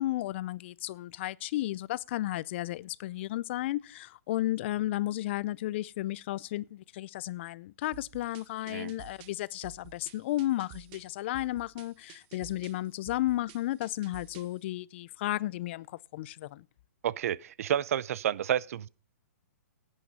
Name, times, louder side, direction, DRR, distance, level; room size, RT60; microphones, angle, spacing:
voice 1, 0.0-16.6, left 15 dB, 45° left, 0.5 m, -33 dB
sound 1, 7.9-14.6, right 13 dB, 35° right, 0.9 m, -52 dB
voice 2, 17.0-18.9, right 10 dB, 60° right, 0.6 m, -30 dB
11.0 x 8.8 x 5.3 m
hypercardioid pair, 145°, 9 cm